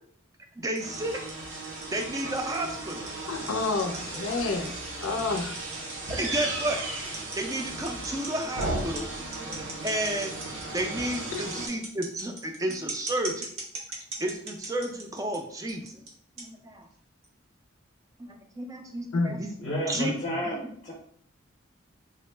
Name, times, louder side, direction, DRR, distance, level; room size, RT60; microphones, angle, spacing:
voice 1, 0.6-1.2 1.9-3.1 6.2-6.8 7.4-9.1 9.4-10.4 10.7-13.5 14.2-16.0 16.4-16.9 18.2-19.5 19.9-20.1, right 1 dB, 15° right, 4 dB, 0.3 m, -32 dB
sound 1, 0.8-11.7, right 2 dB, 65° right, 0.7 m, -36 dB
sound 2, 0.8-15.4 15.7-16.1 16.4-16.5 17.2-17.3, right 3 dB, 80° right, 0.9 m, -40 dB
voice 2, 3.3-4.7 5.0-5.6 11.3-11.4 19.1-20.1, left 3 dB, 85° left, 6 dB, 0.5 m, -30 dB
voice 3, 19.6-20.9, equal, 35° left, -3 dB, 0.5 m, -32 dB
3.7 x 2.0 x 3.2 m, 0.64 s
head